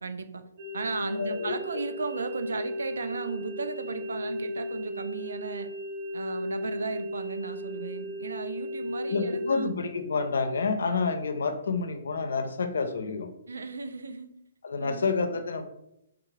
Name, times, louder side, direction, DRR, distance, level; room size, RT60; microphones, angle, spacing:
voice 1, 0.0-0.4 0.7-5.7 6.1-9.7 13.5-14.4 14.8-15.1, right 4 dB, 85° right, 9 dB, 0.3 m, -35 dB
sound 1, 0.6-9.6, left 1 dB, 50° right, 0.7 m, -35 dB
voice 2, 1.1-1.8 9.1-13.3 14.6-15.6, left 4 dB, 75° left, 8 dB, 0.4 m, -29 dB
3.5 x 2.4 x 3.1 m, 0.82 s
hypercardioid pair, 135°, 0 cm